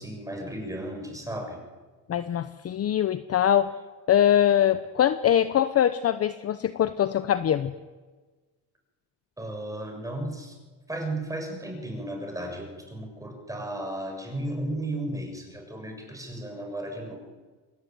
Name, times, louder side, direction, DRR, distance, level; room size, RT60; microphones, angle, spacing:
voice 1, 0.0-1.6 9.4-10.6 10.9-17.2, right 1 dB, 10° right, 2 dB, 7.3 m, -34 dB
voice 2, 2.1-3.7 4.1-7.7, left 10 dB, 35° left, 12 dB, 0.9 m, -23 dB
26.0 x 21.5 x 9.4 m, 1.4 s
cardioid pair, 130°, 41 cm